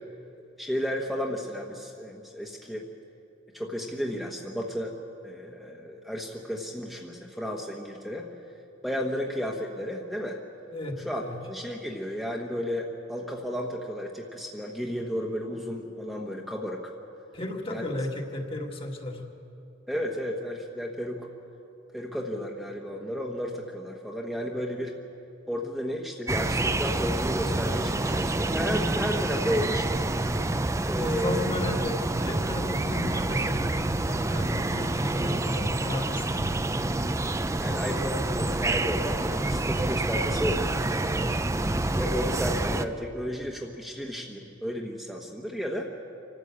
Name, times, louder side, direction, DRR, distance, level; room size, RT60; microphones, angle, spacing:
voice 1, 0.6-2.9 3.5-5.0 5.2-8.3 8.8-10.4 11.1-16.9 17.7-17.8 19.9-21.3 21.9-25.0 25.5-30.1 30.9-31.5 37.6-41.3 42.0-45.9, equal, ahead, -2 dB, 1.2 m, -33 dB
voice 2, 10.7-11.3 17.3-19.2 31.1-36.5, left 1 dB, 30° left, 2 dB, 1.8 m, -34 dB
sound 1, 26.3-42.9, right 2 dB, 15° right, 0.5 m, -27 dB
25.5 x 12.5 x 8.4 m, 2.8 s
head